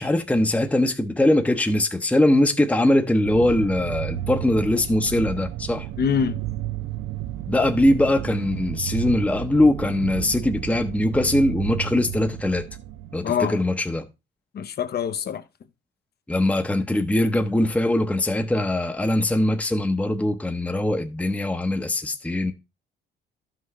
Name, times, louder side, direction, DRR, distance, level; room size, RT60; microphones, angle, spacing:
voice 1, 0.0-5.9 7.5-12.7 13.1-14.1 16.3-22.5, left 1 dB, 5° left, 0.9 m, -21 dB
sound 1, 3.2-13.2, right 13 dB, 80° right, 0.7 m, -32 dB
voice 2, 6.0-6.4 13.2-13.6 14.5-15.4, left 7 dB, 55° left, 0.8 m, -24 dB
12.0 x 5.9 x 3.1 m
cardioid pair, 90°, 20 cm